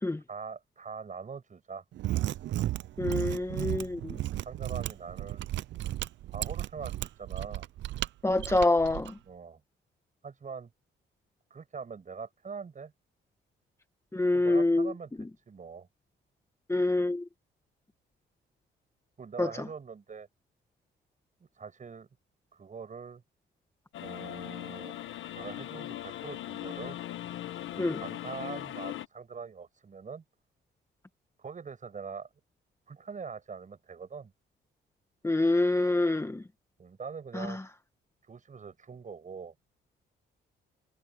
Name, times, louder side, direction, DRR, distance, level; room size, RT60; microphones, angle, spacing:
voice 1, 0.3-1.8 4.4-5.4 6.3-7.7 9.3-9.6 10.2-10.7 11.5-12.9 14.3-15.9 19.2-20.3 21.4-22.1 22.5-23.2 24.0-25.0 25.3-27.0 27.7-30.2 31.4-32.3 32.9-34.3 36.8-37.6 38.3-39.5, right 5 dB, 40° right, 7.9 m, -43 dB
Mechanisms, 1.9-9.1, right 14 dB, 70° right, 0.6 m, -34 dB
voice 2, 3.0-4.2 8.2-9.2 14.1-14.9 15.2-15.3 16.7-17.3 19.4-19.7 27.8-28.0 35.2-36.5 37.3-37.7, left 2 dB, 15° left, 1.5 m, -27 dB
sound 1, 23.9-29.1, left 13 dB, 80° left, 1.2 m, -39 dB
cardioid pair, 90°, 20 cm